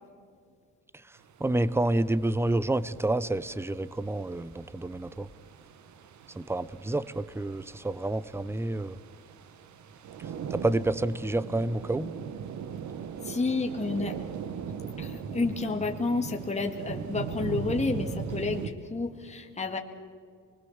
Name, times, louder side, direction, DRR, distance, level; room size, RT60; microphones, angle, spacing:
sound 1, 1.2-18.7, right 7 dB, 70° right, 1.5 m, -40 dB
voice 1, 1.4-5.3 6.4-9.0 10.5-12.1, right 2 dB, 10° right, 17 dB, 0.8 m, -29 dB
voice 2, 13.2-14.1 15.0-19.8, left 3 dB, 20° left, 3 dB, 1.8 m, -30 dB
24.5 x 21.0 x 7.3 m, 2.2 s
cardioid pair, 90°, 30 cm